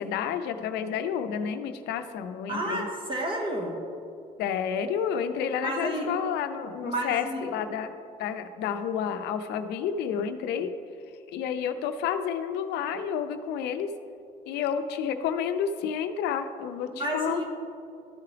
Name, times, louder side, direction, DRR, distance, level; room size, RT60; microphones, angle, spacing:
voice 1, 0.0-2.9 4.4-7.9 8.2-10.7 11.3-13.9 14.5-17.4, left 8 dB, 85° left, 9 dB, 0.5 m, -30 dB
voice 2, 2.5-3.8 5.6-6.1 6.8-7.6 16.9-17.4, right 1 dB, 30° right, 0 dB, 1.6 m, -31 dB
12.5 x 4.7 x 3.3 m, 2.4 s
cardioid pair, 110°, 17 cm